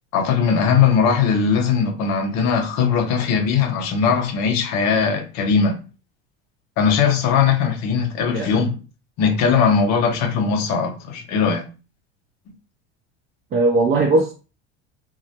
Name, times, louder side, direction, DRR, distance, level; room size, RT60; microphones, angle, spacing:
voice 1, 0.1-5.8 6.8-8.7 9.2-11.6, left 6 dB, 50° left, 0.7 m, -19 dB
voice 2, 8.3-8.7 13.5-14.3, right 2 dB, 30° right, 0.5 m, -19 dB
2.2 x 2.1 x 2.8 m
hypercardioid pair, 95°, 34 cm